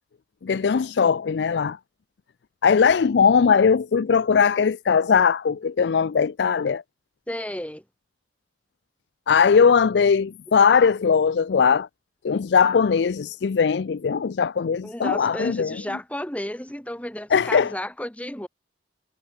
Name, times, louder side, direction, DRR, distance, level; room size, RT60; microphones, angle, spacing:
voice 1, 0.4-1.8 2.6-6.8 9.3-11.9 12.2-15.8 17.3-17.7, left 6 dB, 75° left, 0.4 m, -20 dB
voice 2, 7.3-7.8 14.8-18.5, left 1 dB, 10° left, 1.4 m, -32 dB
head